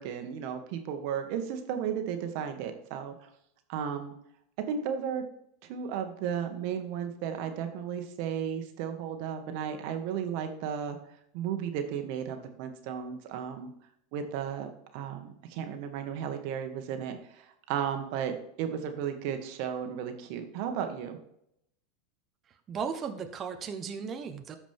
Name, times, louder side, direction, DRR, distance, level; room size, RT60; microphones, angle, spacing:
voice 1, 0.0-3.1 3.7-4.1 4.6-5.2 5.7-11.0 11.3-13.7 14.1-21.2, right 8 dB, 60° right, 6 dB, 1.5 m, -34 dB
voice 2, 22.7-24.6, right 6 dB, 35° right, 6 dB, 1.0 m, -36 dB
13.5 x 5.0 x 3.6 m, 0.75 s
hypercardioid pair, 105°, 0 cm